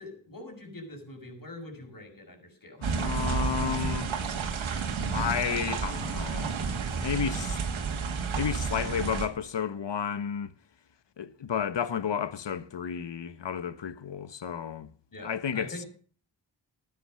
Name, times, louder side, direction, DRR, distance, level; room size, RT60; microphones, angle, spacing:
voice 1, 0.0-2.8 15.1-15.9, left 1 dB, 45° left, 6.8 m, -44 dB
voice 2, 2.8-4.1 5.1-6.6 7.0-7.6 8.3-10.5 11.2-14.9 15.2-15.8, left 7 dB, 65° left, 1.3 m, -32 dB
sound 1, 2.8-9.3, right 5 dB, 80° right, 2.3 m, -31 dB
13.5 x 9.5 x 6.4 m
cardioid pair, 40°, 47 cm